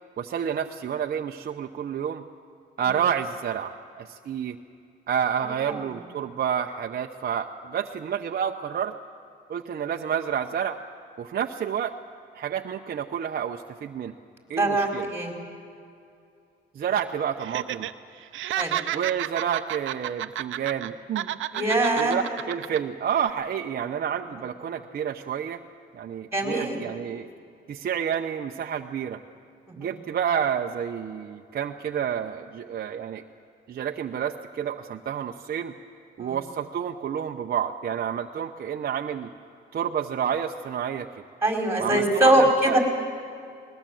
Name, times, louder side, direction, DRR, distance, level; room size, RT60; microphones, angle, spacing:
voice 1, 0.2-2.2 2.8-4.6 5.1-8.9 9.5-10.8 11.2-11.9 12.3-14.1 14.5-15.1 16.7-17.9 18.9-21.7 22.0-25.6 25.9-27.3 27.7-29.2 29.8-33.2 33.7-35.7 36.2-39.3 39.7-41.1 41.8-42.8, right 8 dB, 50° right, 3 dB, 0.8 m, -29 dB
voice 2, 5.4-5.8 14.6-15.3 18.6-18.8 21.5-22.2 26.3-26.8 29.7-29.9 36.2-36.4 41.4-42.8, right 1 dB, 10° right, 1 dB, 4.7 m, -23 dB
Laughter, 17.4-17.9 18.2-20.9 21.1-22.8 23.1-23.3, right 13 dB, 80° right, 0.8 m, -31 dB
20.5 x 20.0 x 7.7 m, 2.5 s
cardioid pair, 90°, 20 cm